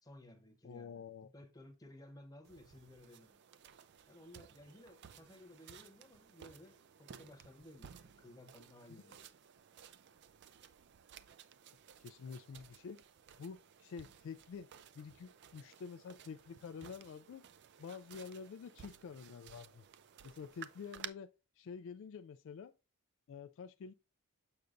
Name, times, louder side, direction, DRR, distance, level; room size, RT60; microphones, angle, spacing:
voice 1, 0.0-3.4 4.1-9.3, left 1 dB, 15° left, 0.9 m, -57 dB
voice 2, 0.6-1.3 8.9-9.0 12.0-13.0 13.4-14.7 15.0-17.4 17.8-19.8 20.2-22.7 23.3-23.9, left 6 dB, 60° left, 0.3 m, -48 dB
sound 1, 2.4-21.1, right 8 dB, 50° right, 0.4 m, -56 dB
6.8 x 6.5 x 2.5 m
head